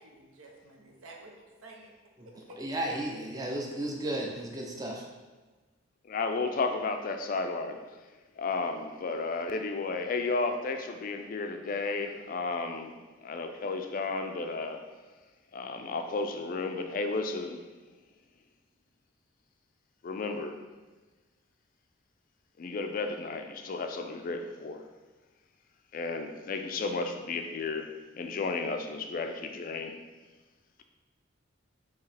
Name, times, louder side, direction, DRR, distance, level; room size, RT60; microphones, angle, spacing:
voice 1, 0.0-1.3 1.6-2.0 2.5-3.5, right 2 dB, 80° right, 0 dB, 0.7 m, -51 dB
voice 2, 2.6-5.1, right 1 dB, 20° right, -1 dB, 0.5 m, -34 dB
voice 3, 6.1-7.8 8.4-12.9 13.2-14.8 15.5-17.6 20.0-20.6 22.6-24.8 25.9-27.9 28.1-30.0, left 3 dB, 40° left, 6 dB, 0.3 m, -33 dB
4.6 x 2.9 x 3.3 m, 1.3 s
head